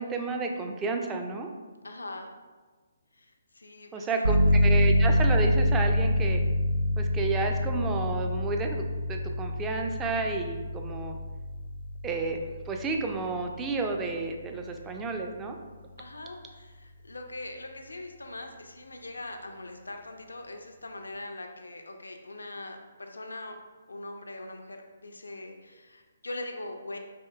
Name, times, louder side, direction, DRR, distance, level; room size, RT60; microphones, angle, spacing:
voice 1, 0.0-1.5 3.9-6.4 7.0-8.8 9.1-11.2 12.0-15.6, right 3 dB, 15° right, 3 dB, 0.3 m, -31 dB
voice 2, 1.8-2.3 3.2-3.3 3.5-4.6 16.0-23.6 23.9-27.0, left 2 dB, 75° left, 4 dB, 0.4 m, -41 dB
sound 1, 4.2-14.8, left 1 dB, 75° right, 0.5 m, -26 dB
4.2 x 3.1 x 2.2 m, 1.4 s
figure-of-eight pair, 135°, 0 cm